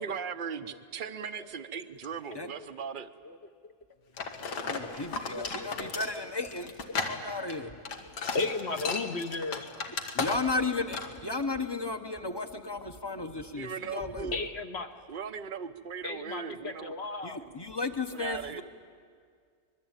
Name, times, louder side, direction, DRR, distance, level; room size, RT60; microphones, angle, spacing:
voice 1, 0.0-3.1 13.6-14.4 15.1-16.9 17.4-17.5 18.1-18.6, right 6 dB, 40° right, 12 dB, 0.8 m, -38 dB
voice 2, 1.0-1.5 2.3-2.6 3.2-3.4 3.6-3.7 5.2-6.2 7.1-7.2 8.3-9.7 12.2-12.5 14.3-14.9 16.0-17.4, left 3 dB, 45° left, 7 dB, 1.2 m, -36 dB
sound 1, 4.2-10.7 10.9-11.2, left 4 dB, 90° left, 2.3 m, -35 dB
voice 3, 4.6-6.7 7.1-7.7 10.1-14.4 17.2-18.6, left 3 dB, 20° left, 8 dB, 0.9 m, -34 dB
25.0 x 21.5 x 9.0 m, 2.1 s
omnidirectional pair, 1.7 m